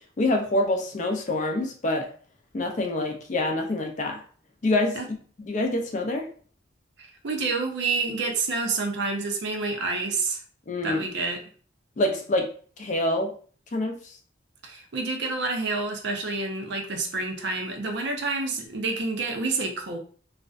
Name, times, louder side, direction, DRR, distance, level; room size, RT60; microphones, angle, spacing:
voice 1, 0.2-2.1 2.5-4.2 4.6-5.0 5.4-6.3 10.7-11.0 12.0-12.5 12.8-13.3 13.7-14.1, left 2 dB, 40° left, 3 dB, 0.4 m, -26 dB
voice 2, 7.0-10.4 10.8-11.4 14.6-20.0, right 3 dB, 65° right, 3 dB, 0.5 m, -28 dB
2.4 x 2.1 x 2.4 m, 0.43 s
head